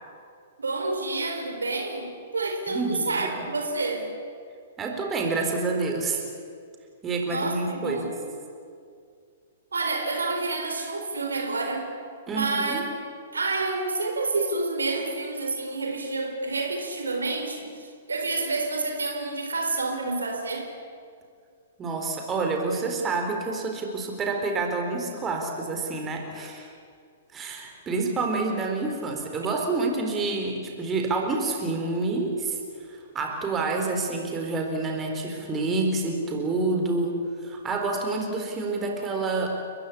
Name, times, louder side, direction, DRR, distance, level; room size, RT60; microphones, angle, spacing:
voice 1, 0.6-4.1 7.3-8.2 9.7-11.9 12.3-12.8 13.3-20.7, right 3 dB, 75° right, 4 dB, 4.1 m, -29 dB
voice 2, 2.7-3.5 4.8-6.2 7.0-8.1 12.3-12.8 21.8-26.7 27.3-32.6 32.9-39.6, right 3 dB, 20° right, 3 dB, 4.2 m, -28 dB
30.0 x 15.5 x 9.9 m, 2.3 s
figure-of-eight pair, 110°, 0 cm